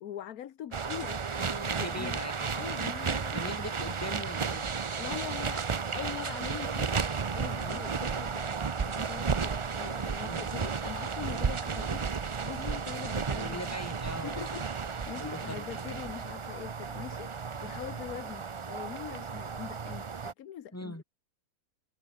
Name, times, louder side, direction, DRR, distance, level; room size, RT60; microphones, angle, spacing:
voice 1, 0.0-2.2 2.5-3.6 5.0-12.2 12.4-13.7 14.2-21.0, left 10 dB, 75° left, 1.4 m, -43 dB
sound 1, 0.7-20.3, right 5 dB, 55° right, 0.3 m, -33 dB
voice 2, 1.8-2.6 3.3-4.7 7.6-7.8 10.3-10.5 13.4-14.5 15.2-15.7 20.7-21.0, left 1 dB, 10° left, 3.2 m, -40 dB
omnidirectional pair, 1.6 m